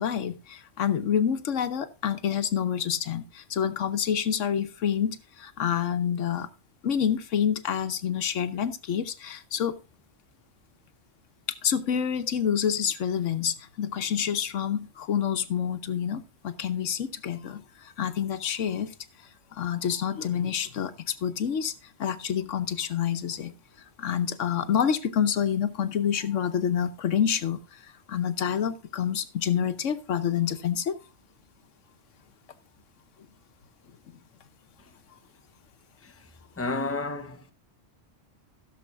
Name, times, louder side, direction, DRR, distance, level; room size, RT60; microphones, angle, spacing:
voice 1, 0.0-6.5 6.8-9.8 11.6-21.7 22.0-23.5 23.8-31.0, left 8 dB, 85° left, 1.3 m, -28 dB
voice 2, 36.6-37.5, left 3 dB, 10° left, 0.9 m, -31 dB
15.5 x 7.0 x 3.5 m
omnidirectional pair, 1.2 m